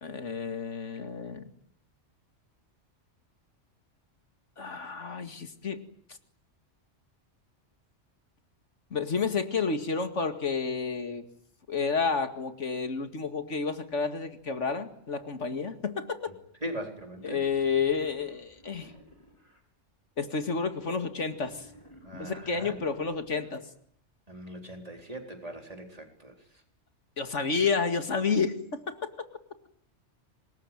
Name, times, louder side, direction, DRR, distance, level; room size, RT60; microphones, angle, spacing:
voice 1, 0.0-1.4 4.6-5.8 8.9-11.2 11.7-16.2 17.2-18.9 20.2-21.7 22.1-23.6 27.2-29.1, left 5 dB, 75° left, 9 dB, 2.4 m, -30 dB
voice 2, 16.6-17.4 22.0-22.8 24.3-26.3, right 1 dB, 30° right, 4 dB, 4.3 m, -40 dB
Wild animals, 17.1-19.6 21.1-23.6, equal, 25° left, 4.9 m, -55 dB
26.5 x 21.0 x 9.3 m, 0.68 s
omnidirectional pair, 1.3 m